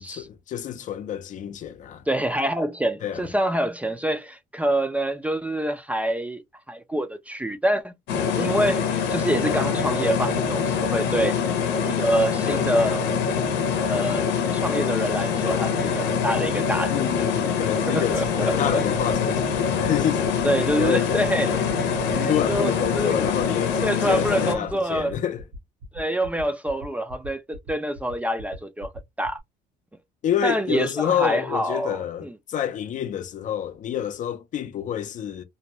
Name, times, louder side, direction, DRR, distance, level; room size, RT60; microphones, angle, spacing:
voice 1, 0.0-2.0 3.0-3.3 16.9-20.3 20.8-21.3 22.2-25.4 30.2-35.4, left 10 dB, 50° left, 0.5 m, -28 dB
voice 2, 2.1-6.4 6.7-7.9 8.4-11.4 11.8-13.0 13.8-14.2 14.5-16.9 17.9-18.8 20.4-21.6 22.1-23.2 23.8-25.1 25.9-28.9 29.2-29.4 30.4-32.3, right 1 dB, 10° right, 0.4 m, -26 dB
sound 1, 8.1-24.5, left 6 dB, 85° left, 0.7 m, -24 dB
sound 2, 20.4-29.4, equal, 80° right, 1.0 m, -40 dB
2.7 x 2.2 x 2.9 m
cardioid pair, 110°, 17 cm